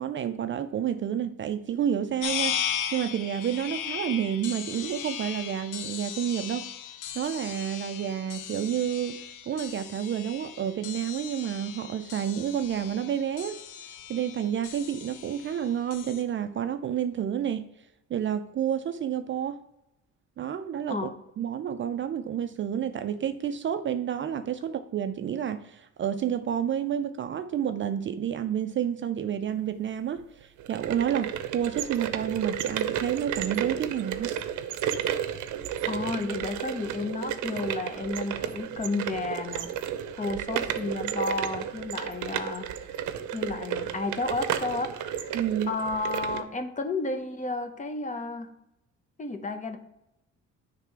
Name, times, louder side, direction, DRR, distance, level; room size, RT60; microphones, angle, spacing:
voice 1, 0.0-6.7 7.1-13.6 14.1-17.7 18.1-19.6 20.4-21.1 21.4-34.3 45.3-45.7, right 9 dB, 40° right, 0.4 m, -30 dB
sound 1, 2.2-16.2, left 9 dB, 85° left, 0.8 m, -37 dB
sound 2, 30.6-46.4, right 9 dB, 80° right, 0.7 m, -32 dB
voice 2, 35.9-39.7 40.2-43.0 43.3-45.3 45.7-48.5 49.2-49.8, left 3 dB, 25° left, 0.8 m, -32 dB
9.7 x 3.3 x 4.6 m
cardioid pair, 130°, 30 cm